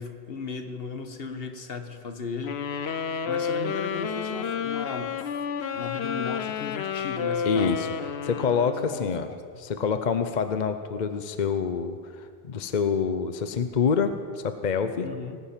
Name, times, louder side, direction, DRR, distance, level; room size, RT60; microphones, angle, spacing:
voice 1, 0.0-5.3 5.7-7.8 8.9-9.7 15.0-15.4, left 4 dB, 70° left, 8 dB, 1.3 m, -36 dB
sound 1, 2.4-9.0, left 6 dB, 90° left, 1.1 m, -30 dB
voice 2, 7.5-7.9 8.2-9.3 9.6-15.1, left 6 dB, 50° left, 9 dB, 0.8 m, -26 dB
19.0 x 10.5 x 7.3 m, 2.1 s
omnidirectional pair, 1.1 m